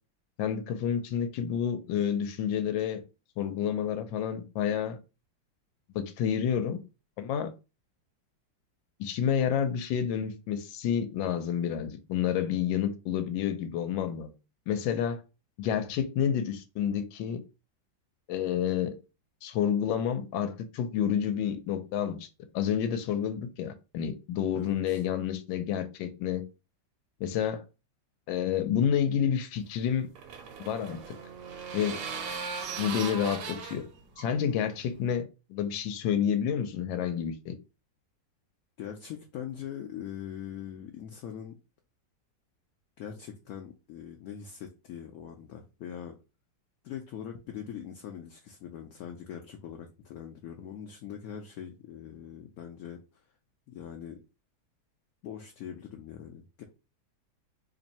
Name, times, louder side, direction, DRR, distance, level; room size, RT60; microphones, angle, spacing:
voice 1, 0.4-3.0 3.4-5.0 5.9-6.8 7.2-7.5 9.0-14.3 14.7-15.2 15.6-17.4 18.3-19.0 19.4-22.3 22.5-26.4 27.2-27.6 28.3-30.1 30.6-31.2 31.7-32.0 32.8-33.9 34.2-37.5, left 8 dB, 85° left, 1.3 m, -29 dB
voice 2, 24.5-25.0 38.8-41.6 43.0-46.2 46.8-53.0 53.7-54.2 55.2-56.6, left 9 dB, 70° left, 0.9 m, -42 dB
sound 1, 29.6-35.1, right 6 dB, 70° right, 1.2 m, -39 dB
3.2 x 2.6 x 4.1 m
omnidirectional pair, 2.0 m